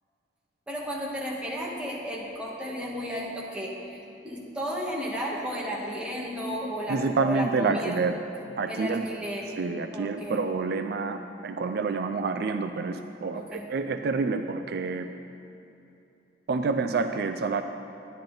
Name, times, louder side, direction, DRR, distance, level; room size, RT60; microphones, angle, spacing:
voice 1, 0.7-8.0 8.7-9.5 9.9-10.4 13.3-13.6, equal, 5° right, -4 dB, 1.5 m, -33 dB
voice 2, 6.9-8.2 8.6-9.1 9.6-15.1 16.5-17.6, right 4 dB, 65° right, 8 dB, 0.4 m, -28 dB
10.5 x 10.0 x 3.9 m, 2.8 s
head